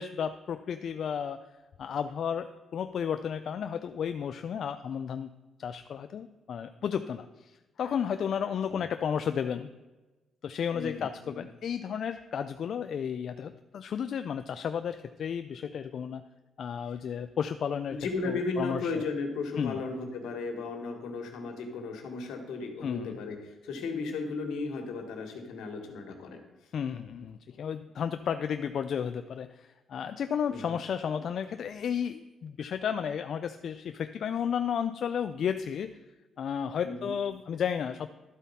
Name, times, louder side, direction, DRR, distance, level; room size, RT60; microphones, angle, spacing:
voice 1, 0.0-1.4 1.8-5.3 5.6-9.7 10.4-16.2 16.6-19.0 19.6-19.8 22.8-23.2 26.7-36.0 36.4-38.1, left 8 dB, 60° left, 9 dB, 0.3 m, -33 dB
voice 2, 10.7-11.1 11.3-11.4 17.9-26.4 30.5-30.7 36.8-37.1, left 3 dB, 80° left, 4 dB, 1.5 m, -35 dB
12.0 x 4.1 x 5.6 m, 1.1 s
cardioid pair, 90°, 0 cm